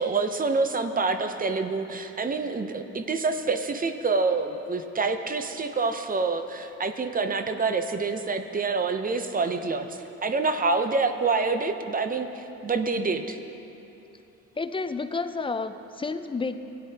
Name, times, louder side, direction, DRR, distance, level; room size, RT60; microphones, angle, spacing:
voice 1, 0.0-13.4, right 4 dB, 30° right, 8 dB, 0.6 m, -27 dB
voice 2, 14.6-16.6, left 4 dB, 20° left, 10 dB, 0.4 m, -30 dB
16.5 x 9.8 x 2.8 m, 2.9 s
cardioid pair, 90°, 30 cm